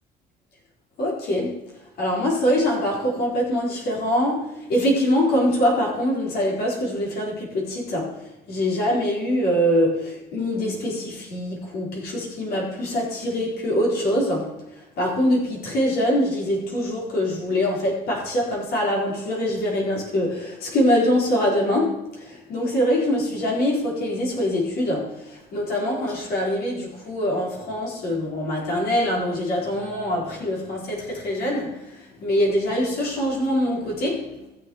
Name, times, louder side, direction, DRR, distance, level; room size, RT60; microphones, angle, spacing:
voice 1, 1.0-1.6 2.0-8.2 8.5-14.6 15.0-34.5, equal, 65° left, -3 dB, 5.1 m, -24 dB
14.0 x 7.6 x 5.0 m, 0.94 s
cardioid pair, 110°, 17 cm